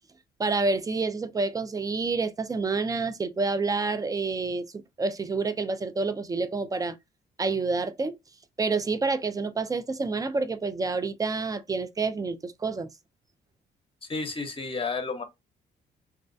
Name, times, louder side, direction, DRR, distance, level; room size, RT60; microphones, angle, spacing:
voice 1, 0.4-4.7 5.0-7.0 7.4-8.1 8.6-12.9, right 3 dB, 20° right, 0.4 m, -28 dB
voice 2, 14.0-15.2, left 4 dB, 30° left, 0.8 m, -31 dB
2.4 x 2.1 x 2.5 m
supercardioid pair, 70°, 19 cm